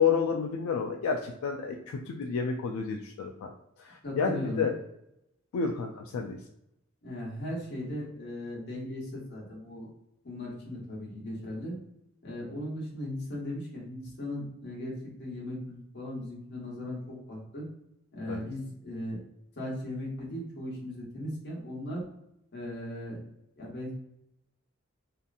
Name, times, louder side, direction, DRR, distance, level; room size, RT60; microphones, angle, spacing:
voice 1, 0.0-3.5 3.8-4.7 5.5-6.4 18.2-18.4, left 6 dB, 85° left, 2 dB, 0.3 m, -30 dB
voice 2, 4.0-4.7 7.0-9.9 10.2-11.8 12.2-17.7 18.1-19.2 19.6-22.0 22.5-23.2 23.6-24.0, left 1 dB, 55° left, -4 dB, 1.1 m, -37 dB
2.8 x 2.5 x 2.3 m, 0.81 s
head